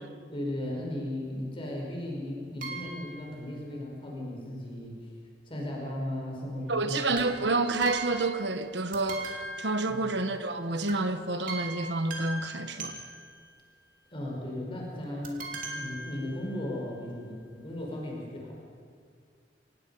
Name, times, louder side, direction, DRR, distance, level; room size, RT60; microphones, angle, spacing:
voice 1, 0.3-4.9 5.5-7.1 9.9-10.0 14.1-15.5 15.7-18.5, left 1 dB, 30° left, 5.0 m, -36 dB
sound 1, 2.6-3.3 7.1-8.7 8.9-10.4 10.9-11.1 11.5-13.5 15.2-16.7 17.4-17.5 17.7-17.8, right 2 dB, 50° right, 3.1 m, -40 dB
voice 2, 6.7-13.0, right 2 dB, 70° right, 1.3 m, -29 dB
25.5 x 19.0 x 5.7 m
head